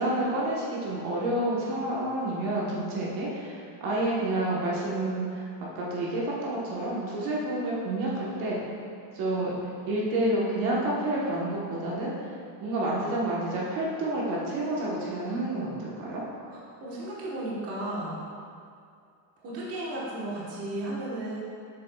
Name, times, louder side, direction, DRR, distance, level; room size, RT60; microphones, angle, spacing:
voice 1, 0.0-5.4 5.7-8.6 9.1-9.6 9.9-12.3 12.6-16.2, right 1 dB, 50° right, -5 dB, 1.2 m, -29 dB
voice 2, 16.5-18.2 19.4-21.4, right 1 dB, 30° right, -6 dB, 1.2 m, -34 dB
7.5 x 7.0 x 2.3 m, 2.3 s
cardioid pair, 170°, 46 cm